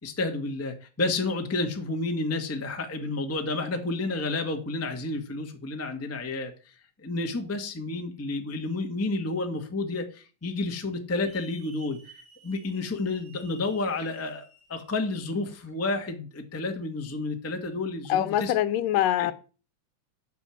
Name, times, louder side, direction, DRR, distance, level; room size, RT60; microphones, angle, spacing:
voice 1, 0.0-6.7 7.0-12.0 12.4-14.4 14.7-18.5 19.2-19.3, left 2 dB, 10° left, 0.7 m, -30 dB
Hiss / Alarm, 11.3-16.1, equal, 25° right, 5.4 m, -54 dB
voice 2, 18.1-19.3, left 12 dB, 80° left, 2.4 m, -24 dB
13.0 x 7.0 x 7.3 m
omnidirectional pair, 3.9 m